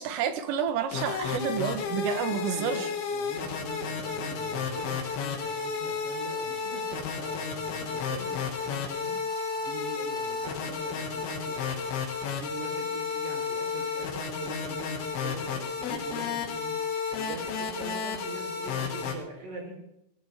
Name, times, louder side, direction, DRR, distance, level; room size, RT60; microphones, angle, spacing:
voice 1, 0.0-2.9, right 8 dB, 85° right, 9 dB, 3.9 m, -30 dB
sound 1, 0.7-19.1, left 5 dB, 60° left, 3.6 m, -32 dB
voice 2, 2.3-19.8, right 2 dB, 55° right, 0 dB, 6.0 m, -43 dB
18.0 x 16.5 x 3.6 m, 0.82 s
omnidirectional pair, 5.7 m